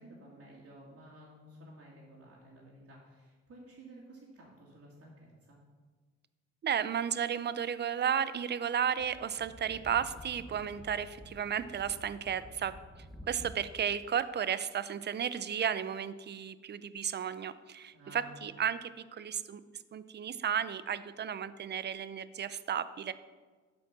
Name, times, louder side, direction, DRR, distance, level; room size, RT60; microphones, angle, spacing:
voice 1, 0.0-5.6 17.9-18.4, right 1 dB, 50° right, -7 dB, 2.4 m, -53 dB
voice 2, 6.6-12.7 13.3-19.6 19.9-23.1, right 8 dB, 35° right, 14 dB, 0.5 m, -33 dB
Speech / Wind, 9.0-13.9, equal, ahead, 0.8 m, -51 dB
8.3 x 5.2 x 6.0 m, 1.4 s
cardioid pair, 90°, 30 cm